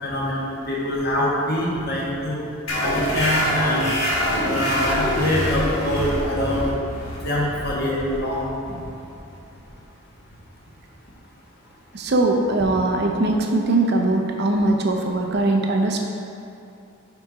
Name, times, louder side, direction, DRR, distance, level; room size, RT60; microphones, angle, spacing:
voice 1, 0.0-2.4 2.8-3.9 4.4-6.7 7.2-8.7, left 1 dB, 50° left, -5 dB, 1.4 m, -24 dB
sound 1, 2.7-9.8, equal, 80° left, 1.4 m, -25 dB
voice 2, 11.9-16.0, right 2 dB, 50° right, 2 dB, 0.6 m, -21 dB
6.7 x 4.2 x 4.7 m, 2.6 s
head